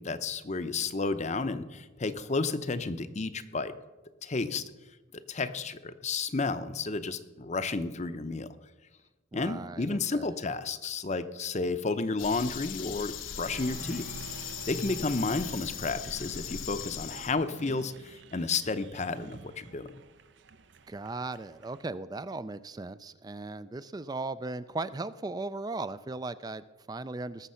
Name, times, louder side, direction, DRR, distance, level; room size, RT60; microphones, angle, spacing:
voice 1, 0.0-3.7 4.2-4.7 5.3-8.5 9.3-19.9, left 3 dB, 35° left, 11 dB, 0.7 m, -32 dB
voice 2, 9.3-10.3 20.9-27.5, right 3 dB, 20° right, 15 dB, 0.3 m, -37 dB
sound 1, 12.2-17.3, left 9 dB, 80° left, 0.8 m, -39 dB
Applause, 13.4-21.8, right 4 dB, 60° right, 0.7 m, -48 dB
19.5 x 7.0 x 5.6 m, 1.2 s
head